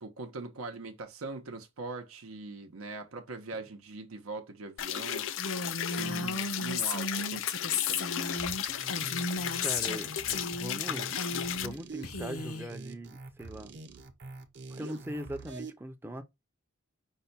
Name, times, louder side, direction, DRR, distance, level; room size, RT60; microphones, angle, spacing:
voice 1, 0.0-5.3 5.8-8.6, right 3 dB, 90° right, 0.7 m, -42 dB
sound 1, 4.8-11.7, left 10 dB, 65° left, 0.4 m, -35 dB
Female speech woman speaking, 5.4-10.0 10.3-10.8 11.1-11.7 12.0-12.7, left 4 dB, 90° left, 0.9 m, -34 dB
voice 2, 6.0-6.4 9.6-11.1 11.5-13.7 14.7-16.2, right 1 dB, 10° right, 0.5 m, -40 dB
sound 2, 8.3-15.7, right 3 dB, 50° right, 0.7 m, -45 dB
5.5 x 2.2 x 4.0 m
head